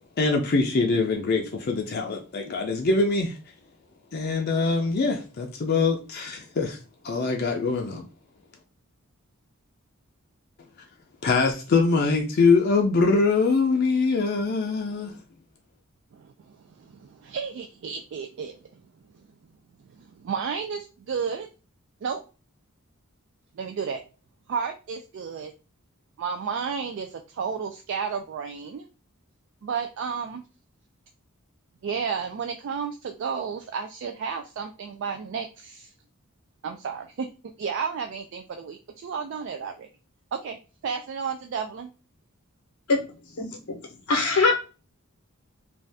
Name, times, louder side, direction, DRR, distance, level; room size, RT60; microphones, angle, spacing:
voice 1, 0.2-3.4 4.1-6.8 7.0-8.1 11.2-15.2, left 4 dB, 45° left, 0.5 m, -23 dB
voice 2, 16.1-18.6 19.9-21.5 22.0-22.2 23.6-24.0 24.5-25.5 26.2-28.9 29.6-30.4 31.8-35.9 36.6-37.3 37.6-39.9 40.3-40.6 40.8-41.9, right 6 dB, 55° right, 0.3 m, -32 dB
voice 3, 43.4-43.8 44.1-44.5, left 3 dB, 85° left, 0.8 m, -22 dB
2.6 x 2.3 x 3.3 m
head